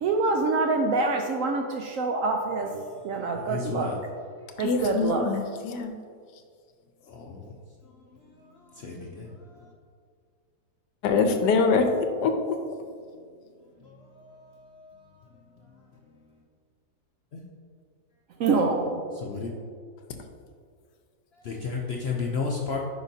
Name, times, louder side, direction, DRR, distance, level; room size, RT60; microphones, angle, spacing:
voice 1, 0.0-2.7 3.0-3.9 4.6-5.3 18.4-19.0, right 3 dB, 70° right, 3 dB, 0.8 m, -25 dB
voice 2, 2.6-4.0 7.1-7.5 8.2-9.7 13.8-15.2 17.3-17.4 19.1-19.5 21.3-22.8, left 4 dB, 65° left, -1 dB, 0.6 m, -35 dB
voice 3, 4.6-5.9 11.0-11.9 12.2-12.6, left 4 dB, 85° left, 6 dB, 1.3 m, -24 dB
9.8 x 5.1 x 2.7 m, 2.1 s
omnidirectional pair, 1.8 m